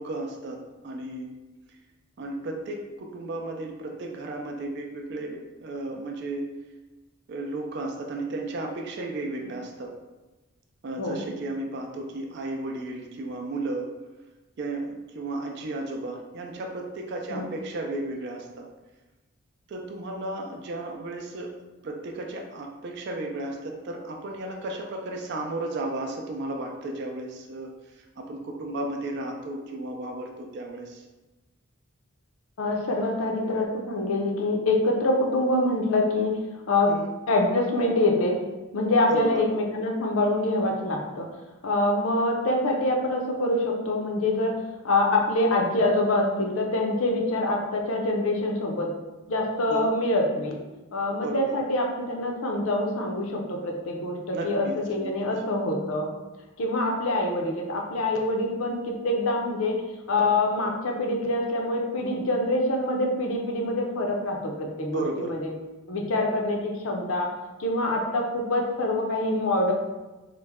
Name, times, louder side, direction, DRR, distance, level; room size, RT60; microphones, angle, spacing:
voice 1, 0.0-1.3 2.2-6.5 7.3-9.9 10.8-13.9 14.6-18.6 19.7-21.5 21.8-27.7 28.0-31.0 36.9-37.1 39.1-39.4 49.7-49.9 51.2-51.5 54.3-55.1 64.9-65.3, right 2 dB, 50° right, 1 dB, 0.3 m, -34 dB
voice 2, 11.0-11.3 17.3-17.5 32.6-36.3 36.7-36.9 37.3-38.4 38.7-41.3 41.6-44.5 44.8-48.9 49.3-50.6 50.9-56.1 56.6-59.8 60.1-65.5 65.9-67.3 67.6-69.7, left 2 dB, 75° left, 1 dB, 0.5 m, -25 dB
3.1 x 2.1 x 3.4 m, 1.1 s
head